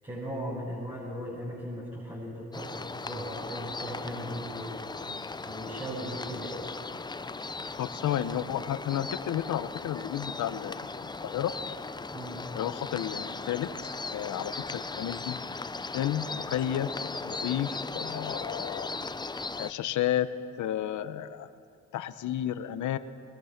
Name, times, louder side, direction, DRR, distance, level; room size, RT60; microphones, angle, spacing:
voice 1, 0.0-4.9 5.5-6.7 12.1-12.5, equal, 15° right, -6 dB, 6.9 m, -38 dB
sound 1, 2.5-19.7, left 3 dB, 15° left, 0.6 m, -38 dB
voice 2, 7.8-11.5 12.5-15.4 15.9-16.9 17.2-18.9 19.6-20.3 20.6-21.5 21.9-23.0, left 11 dB, 75° left, 12 dB, 1.0 m, -32 dB
22.0 x 21.5 x 5.9 m, 2.6 s
cardioid pair, 90°, 30 cm